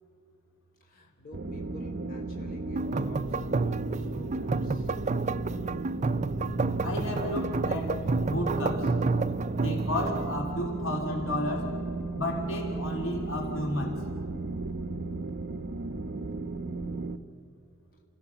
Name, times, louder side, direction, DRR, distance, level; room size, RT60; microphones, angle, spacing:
voice 1, 0.8-4.9, left 1 dB, 45° left, 0 dB, 3.5 m, -51 dB
sound 1, 1.3-17.2, right 3 dB, 60° right, 0.9 m, -35 dB
sound 2, 2.8-10.3, right 3 dB, 35° right, 0.5 m, -30 dB
voice 2, 6.8-8.0 8.3-8.9 9.6-11.7 12.1-14.0, left 1 dB, 70° left, 1 dB, 3.3 m, -32 dB
29.0 x 16.0 x 7.0 m, 2.8 s
head